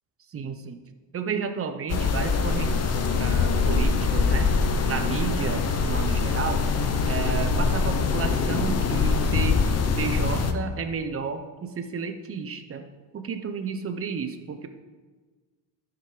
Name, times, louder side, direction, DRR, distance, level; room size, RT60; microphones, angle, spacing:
voice 1, 0.3-0.8 1.1-4.5 4.9-6.6 7.0-9.6 10.0-12.8 13.1-14.7, right 6 dB, 30° right, 7 dB, 0.9 m, -32 dB
sound 1, 1.9-10.5, left 4 dB, 35° left, 0.8 m, -23 dB
12.5 x 5.9 x 5.1 m, 1.4 s
cardioid pair, 125°, 43 cm